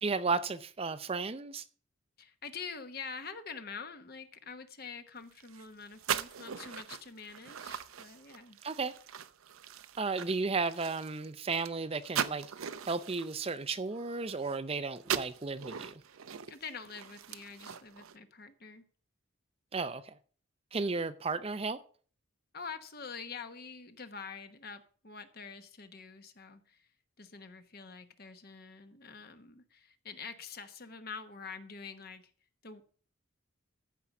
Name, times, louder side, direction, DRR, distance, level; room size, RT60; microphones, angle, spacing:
voice 1, 0.0-1.6 8.6-8.9 10.0-12.5 12.9-16.0 19.7-20.1 20.7-21.8, right 4 dB, 30° right, 0.5 m, -34 dB
voice 2, 2.2-8.6 16.5-18.8 22.5-26.9 27.2-32.3 32.6-32.8, left 5 dB, 45° left, 1.2 m, -46 dB
sound 1, 5.3-14.7 15.0-18.1, right 8 dB, 80° right, 0.7 m, -40 dB
14.5 x 5.5 x 6.0 m
head